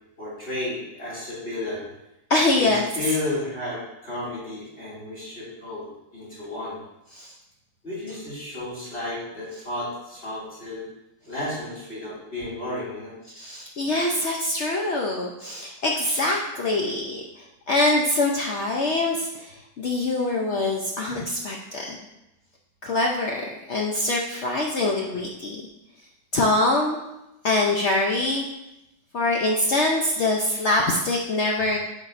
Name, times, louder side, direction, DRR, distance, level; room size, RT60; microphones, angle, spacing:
voice 1, 0.2-1.9 2.6-6.8 7.8-10.9 11.2-13.1, left 2 dB, 35° left, -9 dB, 2.8 m, -32 dB
voice 2, 2.3-2.8 7.1-7.3 13.3-22.0 22.8-23.4 23.7-25.7 26.3-27.0 27.4-28.5 29.1-31.8, left 2 dB, 85° left, -1 dB, 0.6 m, -24 dB
9.1 x 5.2 x 2.5 m, 0.92 s
omnidirectional pair, 2.0 m